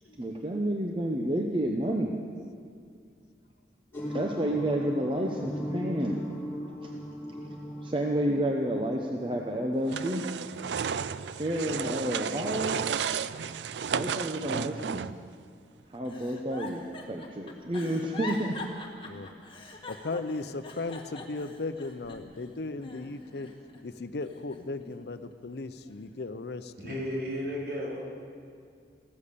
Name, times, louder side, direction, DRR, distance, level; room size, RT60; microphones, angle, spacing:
voice 1, 0.2-2.1 4.1-6.3 6.8-6.9 7.8-10.2 11.4-12.8 13.9-15.0 15.9-18.6, right 1 dB, 30° right, 1 dB, 0.8 m, -30 dB
sound 1, 3.9-10.1, equal, 15° left, 3.3 m, -38 dB
sound 2, 9.9-15.3, right 7 dB, 90° right, 0.4 m, -33 dB
Giggle, 16.0-22.4 22.8-23.8 24.2-25.3 25.9-26.2, left 3 dB, 30° left, 1.5 m, -43 dB
voice 2, 19.9-23.5 23.8-26.9, left 3 dB, 70° left, 12 dB, 0.6 m, -37 dB
voice 3, 26.8-28.0, equal, 60° right, -3 dB, 4.0 m, -33 dB
15.5 x 14.0 x 6.8 m, 2.2 s
head